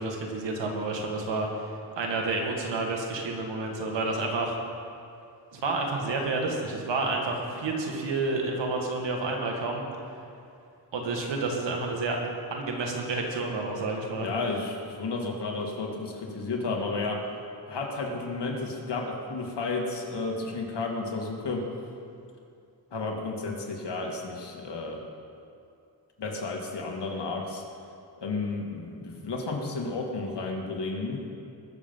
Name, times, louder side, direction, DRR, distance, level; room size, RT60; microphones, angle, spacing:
voice 1, 0.0-1.7 2.0-4.6 5.5-9.8 10.9-12.2 12.5-14.3, right 3 dB, 90° right, 1 dB, 2.0 m, -30 dB
voice 2, 14.2-17.3 17.7-21.7 22.9-25.0 26.2-27.6 28.2-31.2, left 3 dB, 70° left, 0 dB, 2.3 m, -32 dB
21.0 x 7.2 x 5.5 m, 2.5 s
cardioid pair, 70°, 42 cm